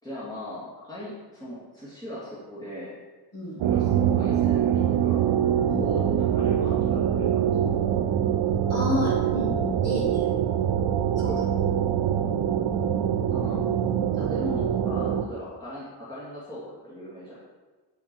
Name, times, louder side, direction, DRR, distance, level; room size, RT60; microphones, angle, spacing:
voice 1, 0.0-3.0 3.6-5.3 5.8-8.0 13.3-13.6 14.1-17.4, equal, 10° left, -9 dB, 2.3 m, -39 dB
sound 1, 3.6-15.2, right 9 dB, 80° right, 0.6 m, -24 dB
voice 2, 8.7-10.3 11.2-11.4, left 2 dB, 40° left, -7 dB, 2.7 m, -30 dB
8.4 x 5.7 x 4.5 m, 1.3 s
wide cardioid pair, 180°, 41 cm